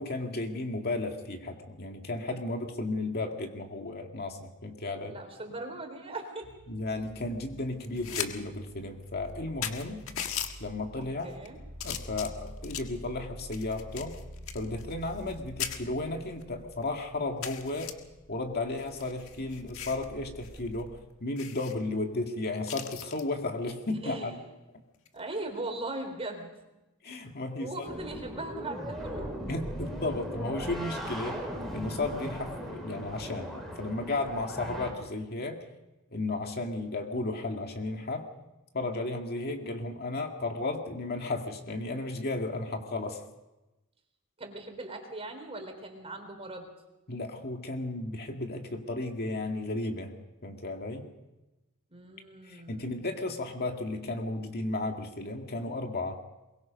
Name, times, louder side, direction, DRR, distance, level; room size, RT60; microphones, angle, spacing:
voice 1, 0.0-5.2 6.7-10.0 10.6-11.3 11.8-14.1 14.5-17.9 18.3-24.4 27.0-27.9 29.5-31.4 31.7-35.6 36.1-38.2 38.7-43.2 47.1-50.1 50.4-51.1 52.4-56.2, left 2 dB, 45° left, 3 dB, 2.1 m, -34 dB
voice 2, 5.1-6.5 11.0-11.6 24.0-24.4 25.1-26.8 27.6-29.3 44.4-46.7 51.9-53.0, right 2 dB, 25° right, 5 dB, 3.7 m, -39 dB
sound 1, 6.4-20.9, equal, 85° right, 4.2 m, -48 dB
sound 2, 7.8-8.3 8.7-8.8 9.3-9.4 9.6-10.5 11.2-11.5 11.8-13.0 13.5-15.3 15.6-15.8 16.4-16.5 16.8-16.9 17.4-17.9 18.8-20.1 20.4-20.6 20.9-21.0 21.4-21.7 22.7-23.2 24.9-25.2, left 9 dB, 65° left, 1.7 m, -38 dB
sound 3, 27.8-34.9, equal, ahead, 5.2 m, -38 dB
23.0 x 22.5 x 5.3 m, 1.0 s
head